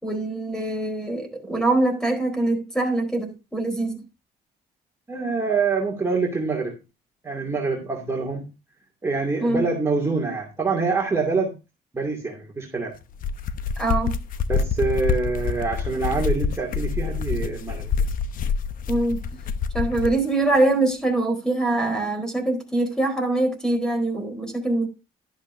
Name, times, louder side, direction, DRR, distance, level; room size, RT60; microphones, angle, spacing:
voice 1, 0.0-4.0 9.4-9.6 13.8-14.1 18.9-19.2 19.7-24.9, right 2 dB, 5° left, 4.3 m, -23 dB
voice 2, 5.1-6.8 7.2-8.5 9.0-11.5 11.9-12.9 14.5-17.9, right 4 dB, 15° right, 2.6 m, -25 dB
sound 1, 13.0-20.2, left 6 dB, 55° left, 0.9 m, -26 dB
12.0 x 11.0 x 2.7 m
cardioid pair, 110°, 17 cm